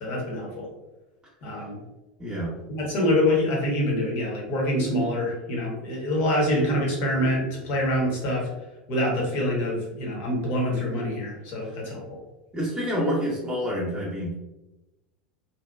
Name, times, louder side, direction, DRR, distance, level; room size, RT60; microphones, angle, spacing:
voice 1, 0.0-0.7 1.4-1.8 2.7-8.5 8.9-12.2, left 1 dB, 50° left, -2 dB, 1.0 m, -25 dB
voice 2, 2.2-2.5 11.6-11.7 12.5-14.3, equal, 20° right, -5 dB, 0.8 m, -28 dB
2.7 x 2.2 x 2.3 m, 0.99 s
hypercardioid pair, 85°, 5 cm